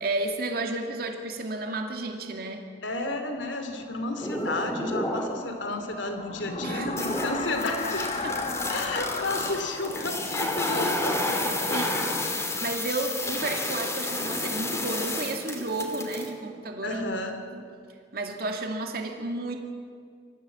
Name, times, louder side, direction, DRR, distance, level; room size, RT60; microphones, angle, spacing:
voice 1, 0.0-2.6 6.6-6.9 8.2-8.3 11.4-12.0 12.6-17.0 17.5-17.6 18.1-19.6, right 2 dB, 55° right, 3 dB, 2.4 m, -32 dB
voice 2, 2.8-8.1 8.7-12.1 16.8-17.4, left 2 dB, 90° left, 6 dB, 2.9 m, -32 dB
sound 1, 3.5-12.2, left 4 dB, 35° left, 1.2 m, -37 dB
sound 2, 4.2-5.5 6.0-16.3, left 1 dB, 15° left, 2.7 m, -31 dB
25.0 x 14.5 x 8.7 m, 2.1 s
head